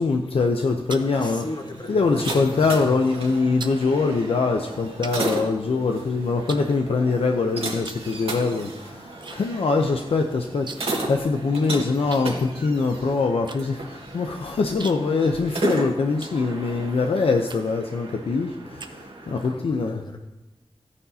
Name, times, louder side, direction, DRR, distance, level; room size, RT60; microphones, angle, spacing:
voice 1, 0.0-1.5 1.9-18.9 19.3-20.0, left 4 dB, 75° left, 3 dB, 0.7 m, -23 dB
sound 1, 0.8-2.6 2.9-3.2 3.6-3.8 4.4-4.5 5.0-6.0 6.5-7.3 7.8-8.1 8.4-9.4 9.7-9.8 10.0-11.0 11.3-11.4 12.1-16.9 17.4-17.9 18.4-19.4, right 4 dB, 50° right, 0.7 m, -41 dB
voice 2, 1.0-2.9 19.5-20.2, left 2 dB, 50° left, 4 dB, 1.2 m, -36 dB
sound 2, 1.0-19.5, right 2 dB, 75° right, 1.9 m, -35 dB
13.5 x 9.7 x 2.8 m, 1.0 s
wide cardioid pair, 110°, 10 cm